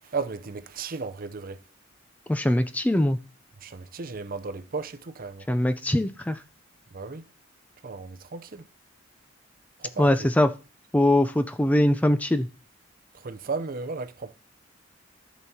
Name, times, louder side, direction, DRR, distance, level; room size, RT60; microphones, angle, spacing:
voice 1, 0.1-1.6 3.6-5.5 6.9-7.2 7.8-8.6 9.8-10.1 13.1-14.3, right 4 dB, 45° right, 0.6 m, -34 dB
voice 2, 2.3-3.2 5.5-6.4 10.0-10.5 10.9-12.5, left 1 dB, 10° left, 0.3 m, -22 dB
14.5 x 6.1 x 2.8 m
head